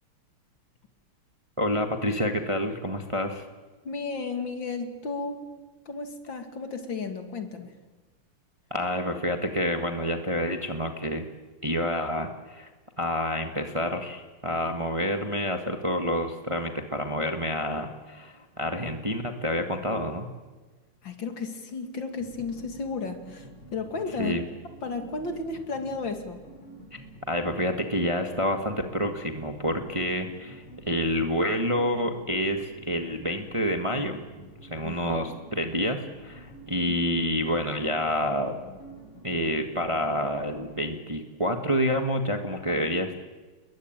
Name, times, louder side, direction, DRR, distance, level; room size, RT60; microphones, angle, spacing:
voice 1, 1.6-3.4 8.7-11.2 11.6-12.7 13.0-20.3 24.2-24.4 26.9-27.0 27.3-34.2 34.7-38.6 39.2-43.1, equal, 15° right, 5 dB, 1.5 m, -28 dB
voice 2, 3.8-5.6 5.9-7.7 21.0-24.4 24.8-26.4 34.8-35.0, left 4 dB, 60° left, 6 dB, 3.0 m, -33 dB
sound 1, 22.2-40.9, right 1 dB, 85° left, 7.0 m, -48 dB
29.5 x 22.0 x 9.1 m, 1.3 s
omnidirectional pair, 2.4 m